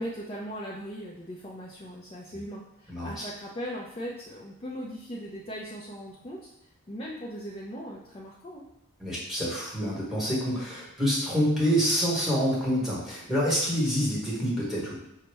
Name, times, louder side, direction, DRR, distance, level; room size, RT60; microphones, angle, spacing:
voice 1, 0.0-6.5 6.9-8.6, equal, 25° left, -4 dB, 0.4 m, -38 dB
voice 2, 2.9-3.2 9.0-15.0, equal, ahead, -7 dB, 1.1 m, -27 dB
5.4 x 2.0 x 3.3 m, 0.86 s
head